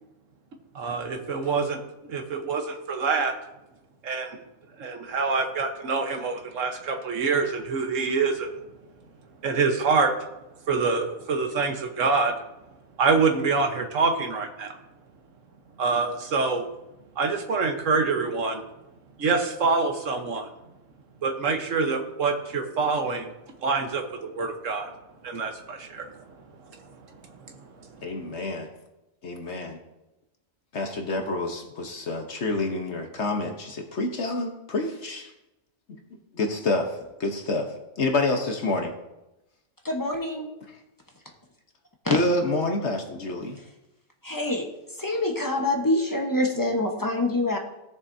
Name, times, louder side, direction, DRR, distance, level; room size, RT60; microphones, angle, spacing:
voice 1, 0.7-1.8 2.1-3.3 4.0-4.4 4.8-8.5 9.4-10.1 10.7-12.3 13.0-14.7 15.8-16.6 17.2-18.6 19.2-20.5 21.2-23.3 23.6-24.9 25.2-26.1 27.4-27.6 28.0-28.1, right 4 dB, 70° right, 5 dB, 1.4 m, -25 dB
voice 2, 28.0-28.7 29.2-29.8 30.7-35.3 35.9-36.0 36.3-38.9 40.7-40.8 42.1-43.6, left 2 dB, 60° left, 3 dB, 1.3 m, -28 dB
voice 3, 39.8-40.5 42.0-42.2 44.2-44.7 45.0-47.6, left 1 dB, 15° left, 1 dB, 0.9 m, -25 dB
16.5 x 6.8 x 2.7 m, 0.94 s
omnidirectional pair, 1.4 m